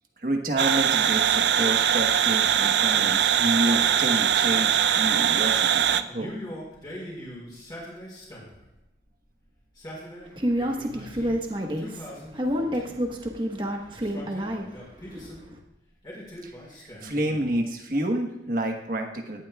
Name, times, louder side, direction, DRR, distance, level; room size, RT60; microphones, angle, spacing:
voice 1, 0.2-6.3 7.6-7.7 16.4-19.5, right 1 dB, 50° right, 2 dB, 1.3 m, -29 dB
sound 1, 0.6-6.0, right 9 dB, 70° right, 0.5 m, -22 dB
Male speech man speaking, 6.1-8.6 9.6-11.3 11.8-13.1 13.9-15.4 16.0-17.5, equal, 25° left, 4.5 m, -41 dB
voice 2, 10.3-15.6, equal, 25° right, 1 dB, 1.3 m, -29 dB
18.0 x 11.5 x 2.4 m, 0.91 s
head